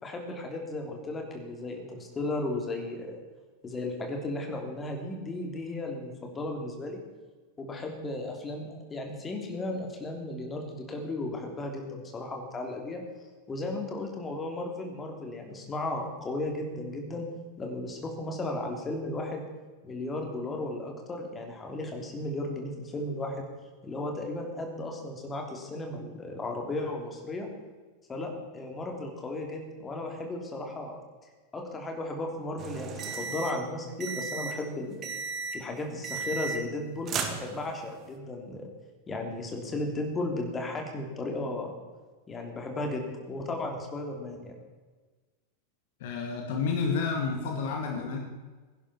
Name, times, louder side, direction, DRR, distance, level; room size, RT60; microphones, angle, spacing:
voice 1, 0.0-3.2 3.6-7.0 7.6-13.0 13.5-17.3 17.6-19.4 19.8-23.5 23.8-27.5 28.1-31.0 31.5-35.0 35.5-38.7 39.1-41.7 42.3-44.5, left 2 dB, 20° left, 2 dB, 3.2 m, -35 dB
sound 1, 32.6-33.6 34.0-34.6 35.0-35.6 36.0-36.8 37.1-37.9, right 5 dB, 30° right, 1.9 m, -35 dB
voice 2, 46.0-48.2, left 5 dB, 55° left, 2 dB, 1.9 m, -30 dB
17.5 x 11.0 x 4.4 m, 1.3 s
figure-of-eight pair, 90°, 0 cm